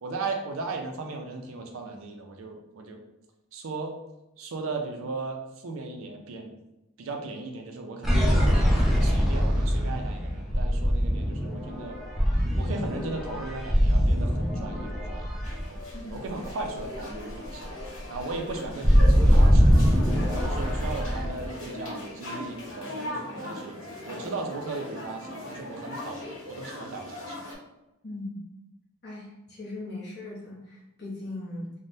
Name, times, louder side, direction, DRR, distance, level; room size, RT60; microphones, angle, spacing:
voice 1, 0.0-3.0 3.5-3.9 4.4-6.5 7.0-8.5 8.9-12.0 12.5-17.6 18.1-19.8 20.4-23.8 24.1-27.4, right 3 dB, 80° right, 3 dB, 0.5 m, -37 dB
sound 1, 8.0-16.4 16.8-17.0 17.3-21.4, equal, ahead, 0.5 m, -23 dB
sound 2, 15.4-27.6, left 1 dB, 80° left, 1.3 m, -39 dB
voice 2, 28.0-28.4 29.0-31.7, left 2 dB, 55° left, -5 dB, 1.0 m, -39 dB
3.3 x 2.1 x 2.6 m, 0.94 s
head